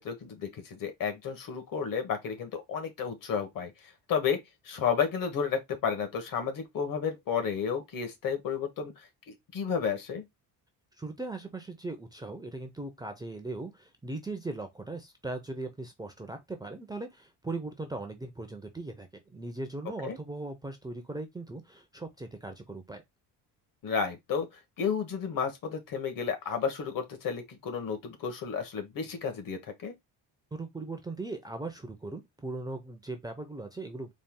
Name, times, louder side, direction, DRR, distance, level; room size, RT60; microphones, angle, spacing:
voice 1, 0.0-3.7 4.1-4.4 4.6-10.2 20.0-20.2 23.8-24.5 24.8-29.9, left 6 dB, 55° left, 1.3 m, -32 dB
voice 2, 11.0-23.0 30.5-34.1, right 2 dB, 10° right, 0.5 m, -39 dB
4.1 x 2.4 x 3.6 m
cardioid pair, 140°, 40 cm